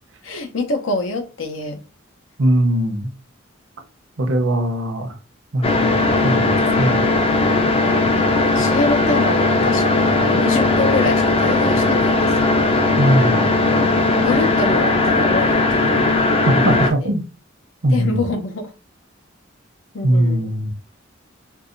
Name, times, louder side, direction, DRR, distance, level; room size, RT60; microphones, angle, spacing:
voice 1, 0.2-1.8 8.1-12.5 14.1-16.0 16.7-17.1 17.9-18.7 19.9-20.5, left 3 dB, 85° left, 0.8 m, -25 dB
voice 2, 2.4-3.1 4.2-5.1 5.5-7.0 13.0-13.5 16.6-17.2 17.8-18.1 20.0-20.7, right 1 dB, 85° right, 0.8 m, -20 dB
sound 1, 5.6-16.9, left 2 dB, 30° left, 0.4 m, -17 dB
4.7 x 2.3 x 2.6 m
head